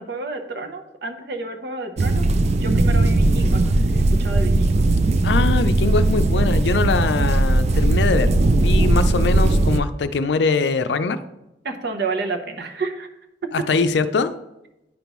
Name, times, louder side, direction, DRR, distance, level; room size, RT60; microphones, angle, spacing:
voice 1, 0.0-2.3 2.5-4.8 11.6-13.1 13.4-13.7, right 3 dB, 65° right, 5 dB, 0.9 m, -30 dB
sound 1, 2.0-9.8, right 2 dB, 40° right, 0.4 m, -18 dB
voice 2, 5.2-11.2 13.5-14.3, left 4 dB, 70° left, 11 dB, 0.5 m, -22 dB
10.0 x 5.2 x 3.1 m, 0.91 s
head